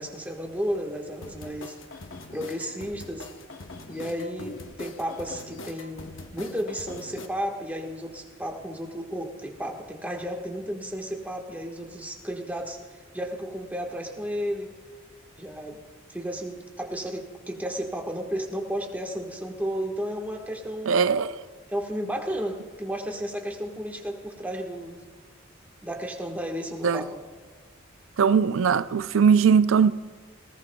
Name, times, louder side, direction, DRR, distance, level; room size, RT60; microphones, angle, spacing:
voice 1, 0.0-1.8 2.3-3.3 3.9-12.8 13.1-14.7 15.4-15.8 16.1-20.9 21.7-25.0 25.8-27.1, equal, 10° right, 1.4 m, -33 dB
sound 1, 1.2-7.3, left 2 dB, 70° left, 0.9 m, -42 dB
voice 2, 20.9-21.4 26.8-27.0 28.2-29.9, right 6 dB, 80° right, 0.4 m, -20 dB
20.0 x 19.0 x 2.3 m
head